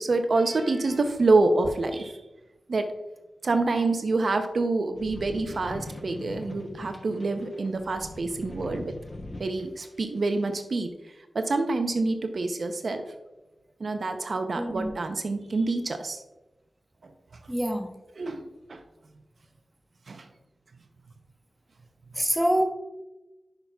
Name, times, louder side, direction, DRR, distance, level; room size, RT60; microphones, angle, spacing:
voice 1, 0.0-2.2 2.7-2.9 3.4-8.9 9.4-10.9 11.3-13.0 13.8-16.2 18.2-18.8 20.1-20.3, right 3 dB, 65° right, 6 dB, 0.6 m, -27 dB
sound 1, 5.0-9.8 10.5-10.6, left 1 dB, 40° left, 1.1 m, -41 dB
voice 2, 14.6-14.9 17.5-17.9 22.2-22.6, equal, 5° right, 4 dB, 0.9 m, -26 dB
10.5 x 5.7 x 2.3 m, 1.0 s
wide cardioid pair, 75°, 0 cm